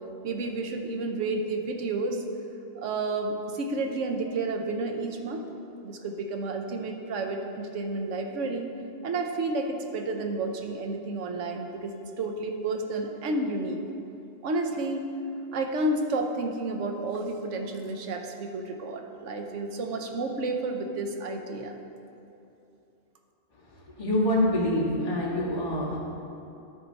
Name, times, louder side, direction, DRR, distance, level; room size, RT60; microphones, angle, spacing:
voice 1, 0.2-2.2 2.8-5.5 5.8-8.7 9.0-13.8 14.4-15.1 15.5-21.8, right 2 dB, 80° right, 4 dB, 1.1 m, -31 dB
voice 2, 24.0-26.0, left 1 dB, 30° left, -8 dB, 1.8 m, -25 dB
12.5 x 4.8 x 4.0 m, 2.8 s
omnidirectional pair, 1.2 m